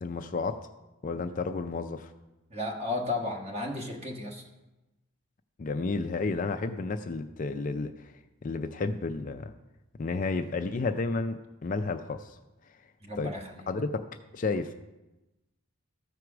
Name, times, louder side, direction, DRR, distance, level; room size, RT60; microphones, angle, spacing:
voice 1, 0.0-0.7 1.0-2.1 5.6-8.1 8.4-9.5 10.0-12.4 13.2-13.3 13.7-14.0 14.3-14.7, left 3 dB, 35° left, 7 dB, 0.4 m, -31 dB
voice 2, 2.5-4.5 13.0-13.6, left 2 dB, 30° right, 1 dB, 1.4 m, -34 dB
13.5 x 4.7 x 5.9 m, 1.0 s
head